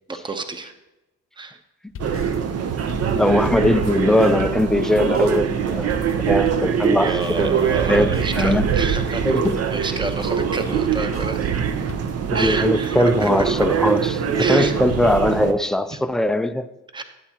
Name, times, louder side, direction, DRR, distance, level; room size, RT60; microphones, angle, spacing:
voice 1, 0.1-0.7 1.4-1.6 3.1-3.2 7.0-9.4 9.7-11.6 12.3-13.5 14.4-14.8 15.9-16.0 16.9-17.0, right 3 dB, 15° right, 0.8 m, -29 dB
sound 1, 1.9-3.9 4.2-9.9 10.2-13.6, left 5 dB, 45° left, 0.7 m, -38 dB
sound 2, 2.0-15.5, right 7 dB, 55° right, 0.7 m, -23 dB
voice 2, 3.1-5.9 6.3-8.7 9.2-9.6 10.7-10.8 12.3-16.7, left 1 dB, ahead, 0.3 m, -20 dB
11.0 x 8.4 x 2.9 m
cardioid pair, 90°, 30 cm